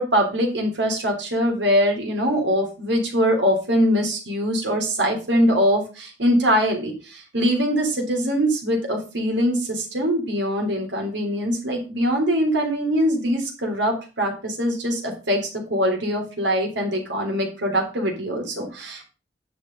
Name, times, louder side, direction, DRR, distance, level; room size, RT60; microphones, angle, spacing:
voice 1, 0.0-15.4 15.7-19.1, equal, 90° right, 1 dB, 3.4 m, -22 dB
10.0 x 6.7 x 3.9 m, 0.32 s
head